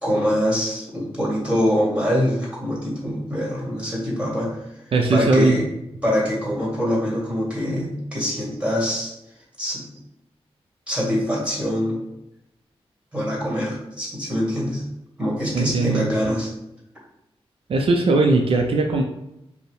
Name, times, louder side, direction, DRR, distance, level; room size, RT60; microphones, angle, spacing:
voice 1, 0.0-4.6 5.1-5.6 6.0-9.1 9.6-9.8 10.9-12.0 13.1-14.8 15.2-16.5, equal, 10° right, -4 dB, 1.8 m, -24 dB
voice 2, 4.9-5.6 15.5-16.1 17.7-19.0, right 3 dB, 65° right, 1 dB, 0.5 m, -19 dB
5.4 x 2.1 x 4.7 m, 0.86 s
wide cardioid pair, 135°, 10 cm